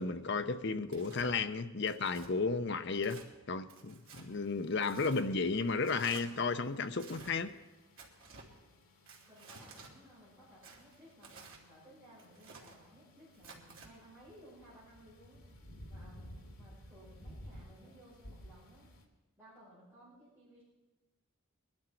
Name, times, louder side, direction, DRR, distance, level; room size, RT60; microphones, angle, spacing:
voice 1, 0.0-3.2 3.5-7.5, left 4 dB, 55° left, 0.7 m, -33 dB
Tearing, 0.9-1.3 1.9-2.3 3.0-3.3 3.7-4.3 4.8-5.2 5.8-6.2 6.9-7.3 8.0-8.5 9.1-9.9 10.6-11.6 12.2-12.8 13.3-13.9, right 4 dB, 65° right, 2.7 m, -53 dB
sound 1, 4.0-19.1, equal, 80° left, 2.2 m, -56 dB
voice 2, 9.3-15.4 15.8-18.9 19.4-20.6, right 1 dB, 10° right, 5.7 m, -59 dB
22.0 x 11.5 x 4.5 m
head